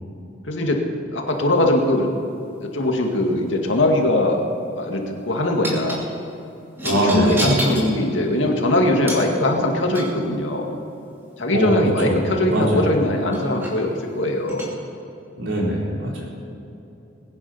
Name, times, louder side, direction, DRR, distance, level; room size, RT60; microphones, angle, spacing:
voice 1, 0.4-0.8 1.1-2.1 2.6-4.4 4.8-6.0 6.8-10.7 11.4-14.7, left 1 dB, 85° left, 1 dB, 2.1 m, -21 dB
sound 1, 3.7-4.1 5.6-6.0 6.8-7.9 9.1-9.3 9.9-10.3 12.7-12.8 13.3-13.8 14.5-14.7, equal, 10° right, 2.7 m, -29 dB
voice 2, 6.8-7.6 11.5-12.2 12.5-12.9 15.4-16.3, right 1 dB, 70° right, -3 dB, 4.0 m, -21 dB
21.0 x 10.0 x 5.7 m, 2.9 s
head